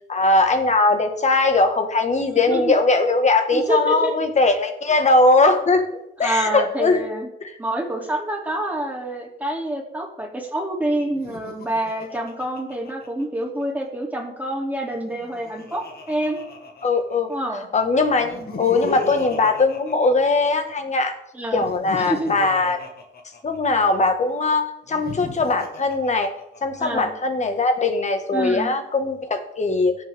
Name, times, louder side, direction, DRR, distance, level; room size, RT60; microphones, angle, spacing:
voice 1, 0.1-5.8 6.2-7.0 16.8-17.3 17.7-21.1 21.5-22.8 23.4-26.3 26.6-30.0, left 3 dB, 35° left, 6 dB, 1.7 m, -20 dB
voice 2, 2.3-2.7 3.5-4.1 6.2-7.3 7.6-16.4 17.3-17.7 18.4-18.7 21.3-21.6 21.9-22.3 26.8-27.1 28.3-28.7, right 1 dB, 10° right, -1 dB, 3.0 m, -27 dB
Laughter, 11.1-13.6 15.0-17.3 18.2-20.7 21.6-24.0 24.8-26.8, left 4 dB, 50° left, 2.1 m, -37 dB
17.0 x 6.9 x 3.6 m, 0.85 s
cardioid pair, 90°, 20 cm